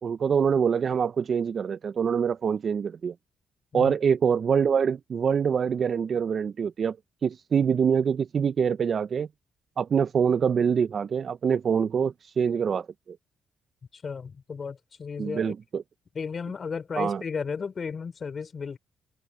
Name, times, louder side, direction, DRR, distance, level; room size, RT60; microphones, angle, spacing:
voice 1, 0.0-3.1 3.7-7.0 7.2-9.3 9.8-13.2 15.2-15.8 17.0-17.2, right 7 dB, 50° right, 0.7 m, -25 dB
voice 2, 13.9-15.5 16.1-18.8, left 5 dB, 45° left, 4.7 m, -34 dB
supercardioid pair, 65°, 0 cm